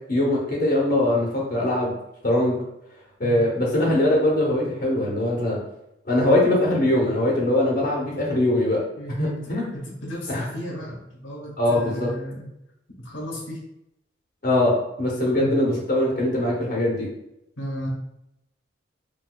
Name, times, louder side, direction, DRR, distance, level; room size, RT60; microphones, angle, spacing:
voice 1, 0.1-1.9 2.2-2.6 3.2-5.6 6.0-8.8 9.2-9.7 10.3-10.5 11.6-12.1 14.4-17.1, left 1 dB, 45° left, -3 dB, 0.9 m, -22 dB
voice 2, 9.0-9.4 9.7-12.5 13.0-13.7 15.4-15.5 17.6-17.9, equal, 75° left, -3 dB, 0.9 m, -34 dB
3.8 x 2.6 x 2.3 m, 0.83 s
head